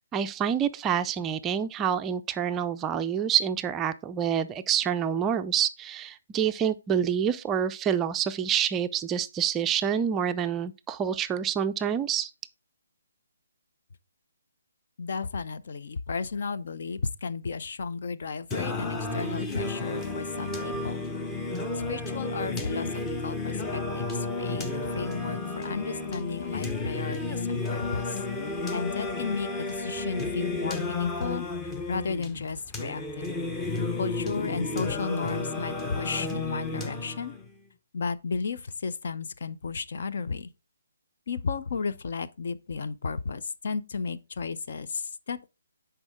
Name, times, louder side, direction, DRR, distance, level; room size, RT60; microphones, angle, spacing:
voice 1, 0.1-12.3, right 8 dB, 15° right, 0.4 m, -27 dB
voice 2, 15.0-21.0 21.8-28.2 28.7-33.2 34.0-37.4 37.9-40.5 41.3-45.5, left 5 dB, 60° left, 0.6 m, -33 dB
Singing, 18.5-37.5, left 3 dB, 10° left, 0.8 m, -32 dB
9.7 x 4.6 x 3.6 m
hypercardioid pair, 150°, 0 cm